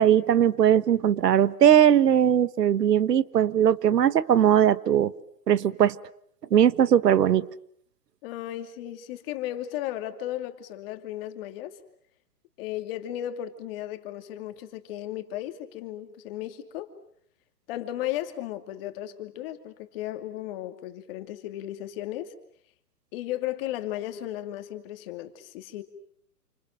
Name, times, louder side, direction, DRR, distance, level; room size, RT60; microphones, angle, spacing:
voice 1, 0.0-5.1 5.5-5.9 6.5-7.5, right 10 dB, 75° right, 18 dB, 1.4 m, -20 dB
voice 2, 8.2-11.8 12.6-16.9 17.7-22.3 23.1-25.8, left 13 dB, 35° left, 8 dB, 2.6 m, -35 dB
29.0 x 26.5 x 7.6 m, 0.67 s
hypercardioid pair, 145°, 48 cm